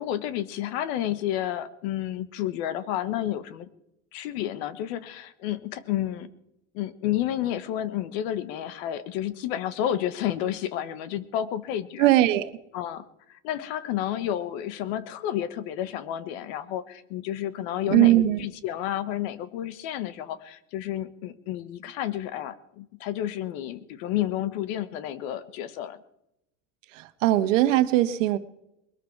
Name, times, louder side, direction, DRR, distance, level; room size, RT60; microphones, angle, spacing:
voice 1, 0.0-3.7 4.1-6.3 6.7-12.1 12.7-26.0, left 11 dB, 55° left, 14 dB, 1.3 m, -31 dB
voice 2, 12.0-12.5 17.9-18.4 26.9-28.4, right 15 dB, 80° right, 11 dB, 1.4 m, -20 dB
21.0 x 13.0 x 4.6 m, 0.84 s
supercardioid pair, 165°, 37 cm